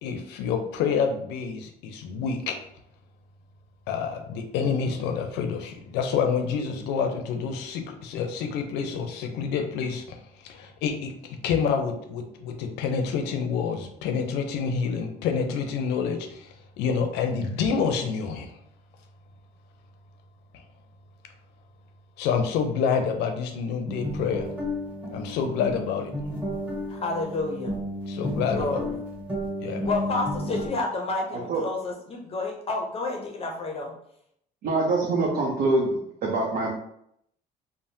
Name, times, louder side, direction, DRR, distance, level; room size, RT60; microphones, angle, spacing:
voice 1, 0.0-2.6 3.9-10.2 10.4-16.5 16.8-18.5 22.2-24.5 25.1-26.1 28.1-28.8 29.6-29.9, left 6 dB, 90° left, 6 dB, 0.5 m, -28 dB
sound 1, 23.9-30.7, equal, 10° right, 1.0 m, -32 dB
voice 2, 26.9-27.8 28.5-29.0 29.8-33.9, left 3 dB, 35° left, 1 dB, 0.5 m, -30 dB
voice 3, 34.6-36.7, right 2 dB, 70° right, -3 dB, 0.7 m, -24 dB
3.3 x 2.0 x 2.7 m, 0.71 s
cardioid pair, 110°, 17 cm